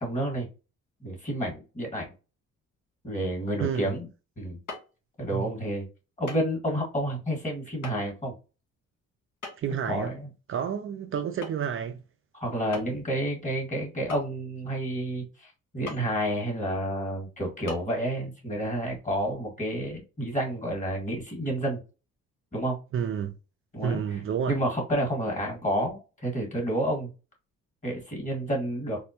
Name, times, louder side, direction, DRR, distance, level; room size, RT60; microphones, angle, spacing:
voice 1, 0.0-0.5 1.0-2.1 3.0-4.1 4.4-4.6 5.2-5.9 6.2-8.3 9.7-10.3 12.3-21.8 22.5-22.8 23.7-24.2 24.5-27.1 27.8-29.0, right 1 dB, 25° left, 1.9 m, -30 dB
voice 2, 3.6-3.9 5.3-5.5 9.6-10.1 10.5-12.0 22.9-23.3 23.8-24.5, right 8 dB, 45° right, 0.4 m, -30 dB
sound 1, 4.7-4.9 6.3-6.5 6.8-6.9 7.8-7.9 9.4-9.8 11.4-11.7 12.0-12.1 12.7-13.1 14.1-14.6 15.9-16.1 16.7-16.8 17.7-17.8, left 3 dB, 70° left, 1.7 m, -39 dB
4.2 x 2.1 x 2.9 m
cardioid pair, 90°, 30 cm